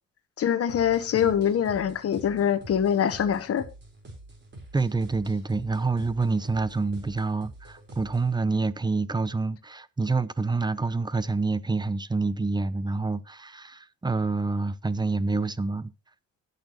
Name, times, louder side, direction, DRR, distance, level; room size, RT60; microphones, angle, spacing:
voice 1, 0.4-3.6, left 9 dB, 50° left, 1.1 m, -24 dB
sound 1, 0.7-8.4, right 1 dB, 35° right, 4.2 m, -46 dB
voice 2, 4.7-15.9, right 3 dB, 15° right, 0.7 m, -27 dB
19.0 x 6.7 x 3.0 m
cardioid pair, 90°, 30 cm